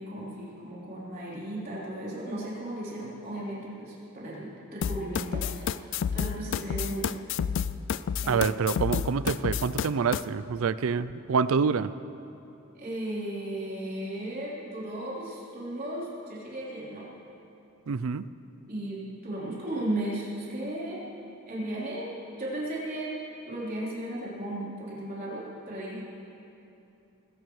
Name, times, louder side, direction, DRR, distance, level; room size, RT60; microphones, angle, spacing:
voice 1, 0.0-7.2 8.2-8.6 12.7-17.0 18.7-21.0 21.5-22.1 22.4-23.2 23.5-26.1, right 1 dB, 40° right, -7 dB, 3.8 m, -35 dB
sound 1, 4.8-10.2, left 7 dB, 60° left, 0.3 m, -30 dB
voice 2, 8.3-11.9 17.9-18.2, right 5 dB, 70° right, 15 dB, 0.4 m, -26 dB
20.0 x 17.0 x 3.2 m, 2.9 s
head